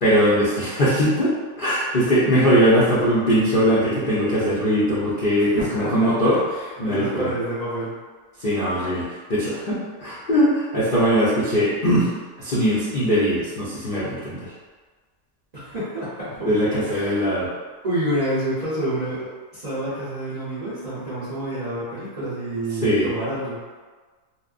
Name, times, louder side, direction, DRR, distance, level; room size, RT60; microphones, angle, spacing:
voice 1, 0.0-1.3 1.6-6.4 6.8-7.3 8.4-9.0 9.3-12.1 12.4-14.5 16.5-17.5 22.8-23.1, equal, 75° left, -10 dB, 0.4 m, -20 dB
voice 2, 5.4-7.9 15.5-17.3 17.8-23.6, right 1 dB, 45° right, -12 dB, 0.5 m, -28 dB
2.9 x 2.0 x 2.4 m, 1.4 s
omnidirectional pair, 1.6 m